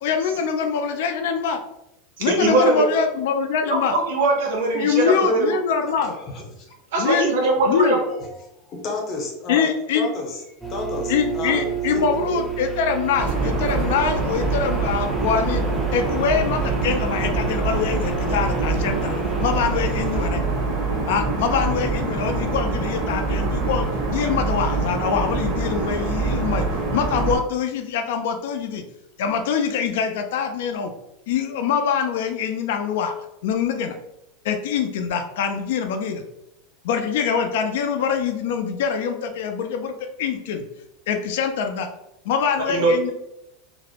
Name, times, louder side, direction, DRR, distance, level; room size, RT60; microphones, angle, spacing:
voice 1, 0.0-1.6 2.2-3.9 4.7-6.1 7.0-7.4 7.7-7.9 9.5-10.1 11.1-15.7 15.9-20.4 21.1-26.7 26.9-28.8 29.2-30.9 31.3-33.1 33.4-33.9 34.4-36.2 36.8-39.9 40.2-40.6 41.1-41.9 42.3-43.1, left 6 dB, 75° left, 5 dB, 0.3 m, -24 dB
voice 2, 2.2-2.9 3.7-5.5 6.9-8.1 42.6-42.9, right 3 dB, 75° right, 0 dB, 0.8 m, -21 dB
voice 3, 5.8-6.7 7.4-7.8 8.1-8.4 8.6-10.4 10.7-12.5, left 3 dB, 40° left, 1 dB, 0.7 m, -32 dB
sound 1, 10.6-20.3, right 8 dB, ahead, 0.4 m, -30 dB
sound 2, 13.2-27.4, right 3 dB, 45° right, 0.6 m, -25 dB
2.5 x 2.0 x 2.7 m, 0.85 s
supercardioid pair, 135°, 0 cm